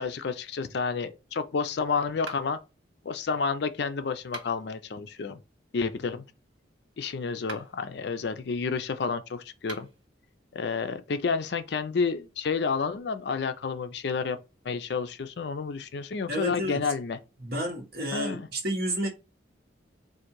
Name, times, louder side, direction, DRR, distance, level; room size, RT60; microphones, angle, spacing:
voice 1, 0.0-2.6 3.0-5.4 5.7-6.2 7.0-9.9 10.5-14.4 14.6-17.2 18.1-18.5, left 5 dB, 60° left, 0.4 m, -30 dB
sound 1, 2.2-2.7 4.2-4.8 7.3-7.9 9.6-10.1, right 3 dB, 75° right, 1.4 m, -43 dB
voice 2, 16.3-16.8 17.4-19.1, equal, 50° right, 1.2 m, -30 dB
3.7 x 2.6 x 4.5 m
head